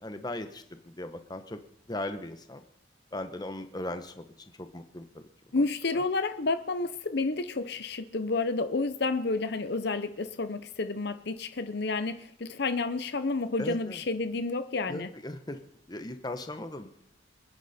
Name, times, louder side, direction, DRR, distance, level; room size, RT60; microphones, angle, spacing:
voice 1, 0.0-1.6 1.9-2.6 3.1-5.0 5.5-5.6 13.6-14.0 14.9-15.6 15.9-17.1, left 1 dB, 20° left, 8 dB, 1.2 m, -38 dB
voice 2, 5.5-15.1, left 3 dB, 60° left, 10 dB, 0.8 m, -30 dB
26.5 x 10.0 x 4.4 m, 0.72 s
head